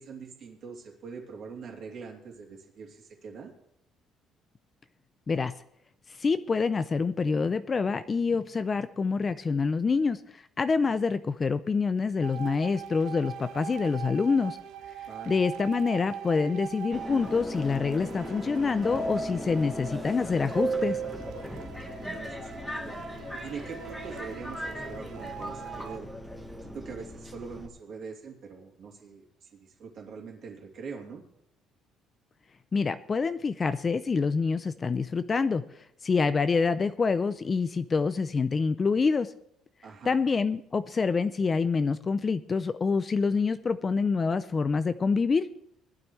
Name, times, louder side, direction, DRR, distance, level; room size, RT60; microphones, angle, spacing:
voice 1, 0.0-3.5 15.1-15.4 22.0-23.0 23.3-26.1 26.6-31.2 39.8-40.1, right 5 dB, 45° right, -1 dB, 2.9 m, -43 dB
voice 2, 6.2-14.6 15.3-21.0 32.7-35.6 36.0-39.3 40.0-45.5, left 4 dB, 20° left, 13 dB, 0.4 m, -26 dB
sound 1, 12.2-26.0, right 7 dB, 85° right, 1.1 m, -43 dB
Subway metro underground, 16.9-27.7, right 1 dB, 5° left, 1.3 m, -36 dB
20.0 x 12.0 x 3.2 m, 0.76 s
cardioid pair, 175°, 0 cm